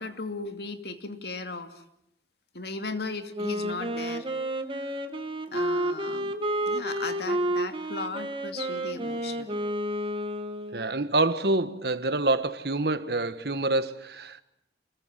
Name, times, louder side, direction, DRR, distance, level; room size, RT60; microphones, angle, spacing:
voice 1, 0.0-1.7 2.5-4.3 5.5-6.3 6.7-9.6, left 3 dB, 60° left, 2.6 m, -36 dB
Wind instrument woodwind instrument, 3.3-11.0, right 1 dB, 30° right, 2.1 m, -30 dB
voice 2, 10.7-14.4, right 2 dB, 60° right, 1.6 m, -26 dB
29.5 x 21.5 x 7.5 m
head